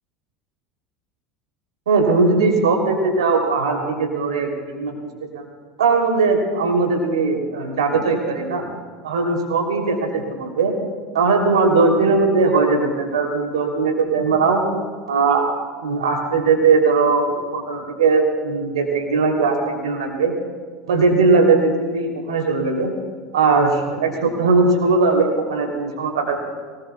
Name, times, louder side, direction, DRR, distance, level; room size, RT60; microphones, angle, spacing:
voice 1, 1.9-5.5 5.8-8.6 9.0-10.7 11.1-14.6 15.1-15.5 15.8-20.3 20.9-22.9 23.3-26.4, right 4 dB, 70° right, 2 dB, 3.1 m, -19 dB
24.0 x 19.5 x 2.3 m, 1.5 s
figure-of-eight pair, 75°, 3 cm